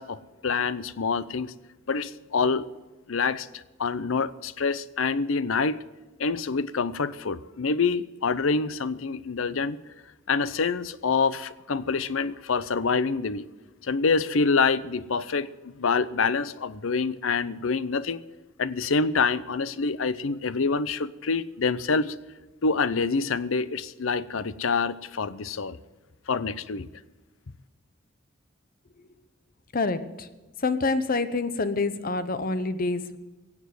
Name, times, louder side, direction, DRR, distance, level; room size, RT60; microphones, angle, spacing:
voice 1, 0.0-1.5 1.9-2.7 3.1-5.8 6.2-9.8 10.3-13.5 13.8-18.2 18.6-22.1 22.6-25.8 26.3-26.9, left 4 dB, 80° left, 16 dB, 0.7 m, -26 dB
voice 2, 29.7-30.3 30.6-33.2, left 3 dB, 45° left, 12 dB, 0.9 m, -27 dB
17.0 x 7.3 x 9.3 m, 1.2 s
head